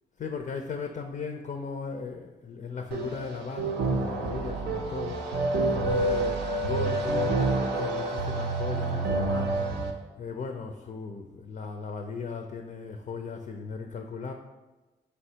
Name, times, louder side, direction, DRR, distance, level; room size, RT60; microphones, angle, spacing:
voice 1, 0.2-5.2 5.6-7.4 7.7-9.8 10.2-14.3, left 5 dB, 45° left, 5 dB, 0.4 m, -37 dB
sound 1, 2.9-9.9, right 2 dB, 75° right, 0.5 m, -28 dB
4.2 x 3.3 x 2.8 m, 1.1 s
hypercardioid pair, 45°, 18 cm